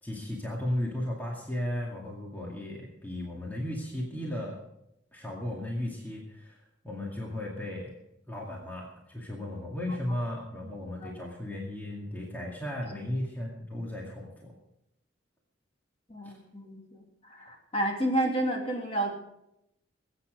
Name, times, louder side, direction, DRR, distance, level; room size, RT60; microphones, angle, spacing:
voice 1, 0.0-4.6 5.1-6.6 6.8-8.0 8.3-14.5 16.2-16.3, left 1 dB, 10° left, -2 dB, 2.2 m, -35 dB
voice 2, 16.1-17.0 17.4-19.1, right 1 dB, 30° left, 0 dB, 2.9 m, -30 dB
21.0 x 8.9 x 5.1 m, 0.81 s
head